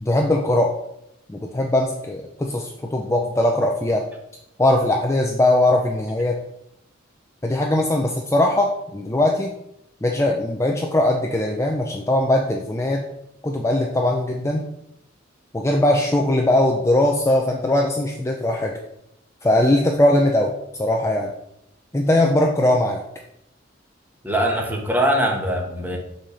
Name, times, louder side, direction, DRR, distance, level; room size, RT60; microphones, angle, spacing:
voice 1, 0.0-0.7 1.3-4.1 4.6-6.4 7.4-9.5 10.0-13.1 13.4-14.6 15.5-18.7 19.4-20.5 20.8-21.3 21.9-23.0, left 1 dB, 15° left, 1 dB, 0.6 m, -20 dB
voice 2, 24.2-26.0, right 1 dB, 10° right, 0 dB, 1.3 m, -22 dB
6.1 x 4.3 x 6.3 m, 0.80 s
head